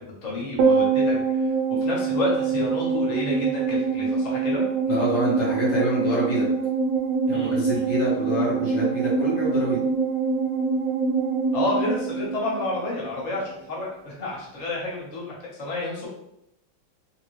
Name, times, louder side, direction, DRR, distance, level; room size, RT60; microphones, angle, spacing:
voice 1, 0.0-4.6 7.3-7.8 11.5-16.1, left 2 dB, 80° left, -5 dB, 0.3 m, -30 dB
sound 1, 0.6-13.1 13.4-13.5, right 4 dB, 80° right, 1.5 m, -24 dB
voice 2, 4.9-6.5 7.3-9.9, equal, 55° left, -6 dB, 1.8 m, -27 dB
3.6 x 2.6 x 3.0 m, 0.82 s
omnidirectional pair, 2.3 m